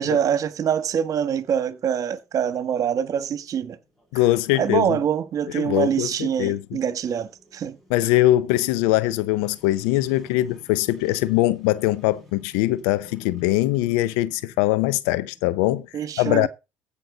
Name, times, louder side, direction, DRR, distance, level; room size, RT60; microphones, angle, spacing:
voice 1, 0.0-3.8 4.5-7.8 15.9-16.5, right 8 dB, 55° right, 1.5 m, -24 dB
sound 1, 0.8-16.0, left 1 dB, ahead, 7.3 m, -54 dB
voice 2, 4.1-5.0 5.5-6.8 7.9-15.9 16.2-16.5, left 16 dB, 85° left, 0.6 m, -22 dB
15.5 x 5.7 x 3.9 m
supercardioid pair, 70°, 7 cm